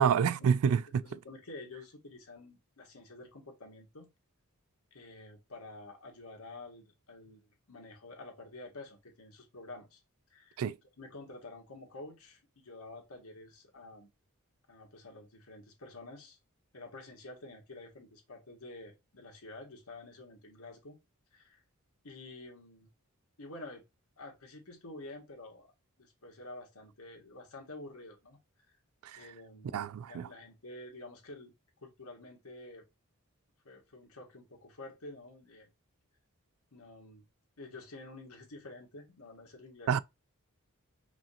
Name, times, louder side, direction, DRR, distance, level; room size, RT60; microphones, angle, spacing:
voice 1, 0.0-1.0 10.6-10.8 29.1-29.2 29.7-30.3 39.9-40.0, right 7 dB, 75° right, 0.3 m, -27 dB
voice 2, 1.0-4.1 4.9-10.0 10.3-10.6 11.0-14.1 14.7-16.4 16.7-21.0 21.3-21.6 22.0-22.9 23.4-23.8 24.2-25.7 26.0-28.4 29.2-29.8 30.1-31.5 31.8-32.8 33.6-35.7 36.7-37.2 37.6-40.0, left 2 dB, 90° left, 1.6 m, -49 dB
5.0 x 2.9 x 2.5 m
head